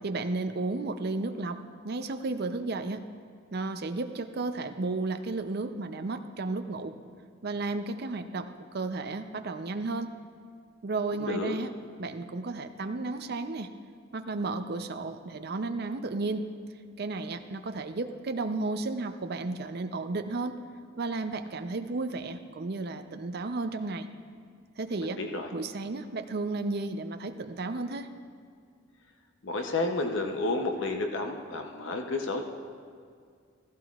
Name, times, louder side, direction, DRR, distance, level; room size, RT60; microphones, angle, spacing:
voice 1, 0.0-3.0 3.5-6.9 7.4-10.1 10.8-11.7 12.0-13.7 14.1-16.5 17.0-20.6 21.0-24.1 24.8-25.2 25.5-28.1, right 3 dB, 50° right, 8 dB, 0.5 m, -33 dB
voice 2, 11.2-11.6 25.0-25.5 29.4-32.4, left 2 dB, 65° left, 4 dB, 0.7 m, -31 dB
15.0 x 14.5 x 2.4 m, 2.2 s
head